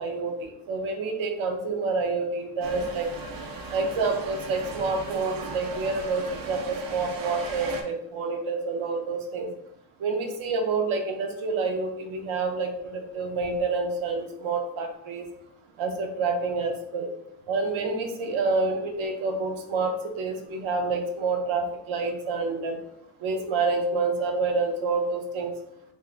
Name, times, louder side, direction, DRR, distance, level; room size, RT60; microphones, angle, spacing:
voice 1, 0.0-3.1 3.7-9.5 10.0-15.2 15.8-17.1 17.5-22.8 23.2-25.5, right 3 dB, 90° right, 4 dB, 0.7 m, -28 dB
sound 1, 2.6-7.8, right 3 dB, 50° right, 0.5 m, -37 dB
3.5 x 2.6 x 2.4 m, 0.76 s
wide cardioid pair, 165°, 47 cm